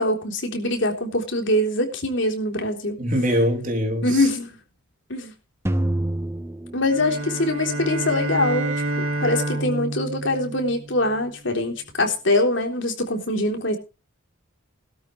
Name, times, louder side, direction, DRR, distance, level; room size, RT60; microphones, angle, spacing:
voice 1, 0.0-3.0 4.0-4.5 5.1-5.3 6.7-13.8, left 1 dB, 60° left, 3.6 m, -23 dB
voice 2, 3.0-4.3, equal, 40° right, 3.4 m, -23 dB
sound 1, 5.7-7.8, right 1 dB, 15° right, 1.2 m, -27 dB
sound 2, 6.9-11.3, right 2 dB, 85° right, 2.8 m, -28 dB
18.0 x 12.5 x 3.2 m
head